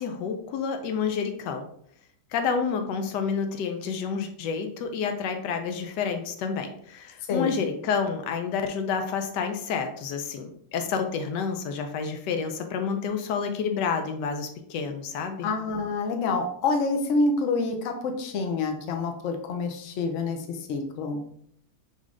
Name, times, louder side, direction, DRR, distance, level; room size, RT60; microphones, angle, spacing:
voice 1, 0.0-1.7 2.3-15.5, left 6 dB, 85° left, 6 dB, 1.2 m, -29 dB
voice 2, 15.4-21.2, left 3 dB, 65° left, 4 dB, 0.8 m, -27 dB
5.2 x 3.1 x 2.4 m, 0.67 s
omnidirectional pair, 1.8 m